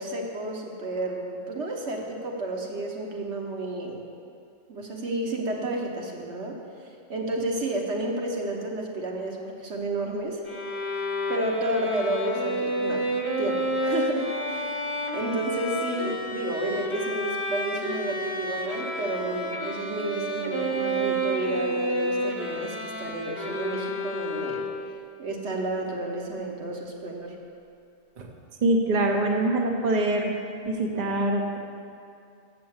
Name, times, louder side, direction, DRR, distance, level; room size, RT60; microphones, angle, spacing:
voice 1, 0.0-4.0 4.7-6.6 7.1-10.4 11.3-13.1 13.4-14.8 15.1-24.6 25.2-27.3, right 2 dB, 80° right, 0 dB, 1.4 m, -31 dB
Bowed string instrument, 10.5-25.0, equal, 30° left, 0.9 m, -30 dB
voice 2, 28.6-30.3 30.6-31.6, right 2 dB, 40° right, 2 dB, 0.9 m, -24 dB
7.5 x 6.8 x 7.2 m, 2.4 s
omnidirectional pair, 1.2 m